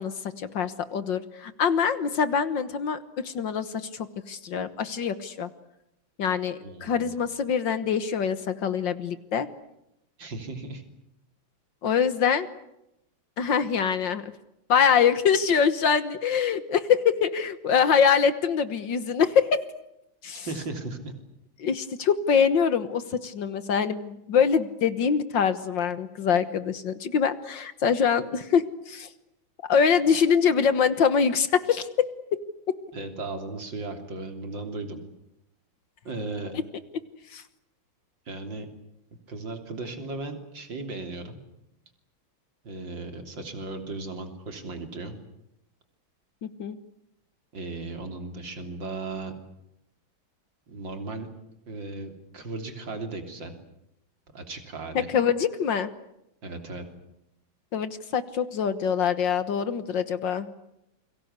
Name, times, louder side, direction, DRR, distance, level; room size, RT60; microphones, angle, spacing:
voice 1, 0.0-5.5 6.2-9.5 11.8-12.5 13.4-14.3 14.7-19.6 20.2-20.5 21.6-29.1 29.7-32.1 32.7-32.8 36.5-36.6 37.3-37.4 46.4-46.8 55.0-55.9 57.7-60.5, left 7 dB, 65° left, 13 dB, 1.9 m, -24 dB
voice 2, 6.6-7.1 10.2-10.8 20.3-21.1 32.9-35.0 36.1-36.5 38.3-38.7 39.3-41.4 42.6-45.2 47.5-49.3 50.7-51.3 51.7-53.6 54.3-55.1 56.4-56.8, right 3 dB, 65° right, 6 dB, 4.0 m, -36 dB
29.0 x 23.5 x 8.2 m, 0.85 s
omnidirectional pair, 2.2 m